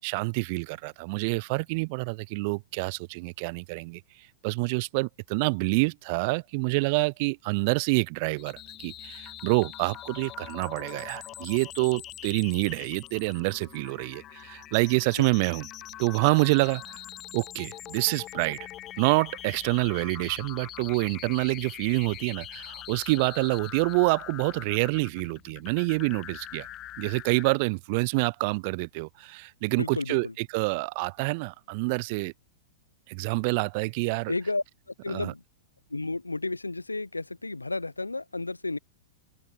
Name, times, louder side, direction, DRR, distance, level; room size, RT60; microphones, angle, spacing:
voice 1, 0.0-4.0 4.4-15.7 16.0-16.8 17.3-18.6 19.0-26.7 27.0-32.3 33.1-34.3 35.1-35.3, right 29 dB, 45° right, 0.6 m, -27 dB
sound 1, 8.4-27.5, left 14 dB, 30° left, 0.6 m, -43 dB
voice 2, 29.8-30.3 34.3-34.6 35.0-35.4 35.9-38.8, left 2 dB, 85° left, 1.0 m, -32 dB
open air
figure-of-eight pair, 100°, 0 cm